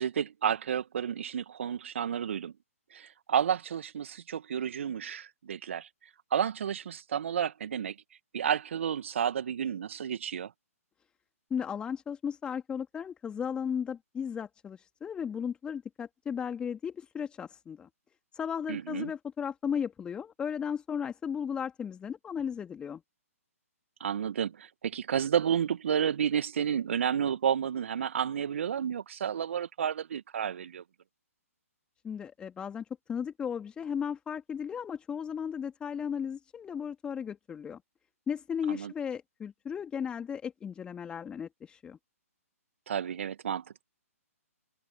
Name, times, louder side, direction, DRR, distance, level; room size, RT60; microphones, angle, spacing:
voice 1, 0.0-2.5 2.9-5.9 6.3-8.0 8.3-10.5 18.7-19.1 24.0-30.8 38.7-38.9 42.9-43.8, right 8 dB, 55° right, 2.1 m, -31 dB
voice 2, 11.5-17.9 18.3-23.0 32.0-37.8 38.3-42.0, left 7 dB, 10° left, 2.9 m, -35 dB
figure-of-eight pair, 130°, 8 cm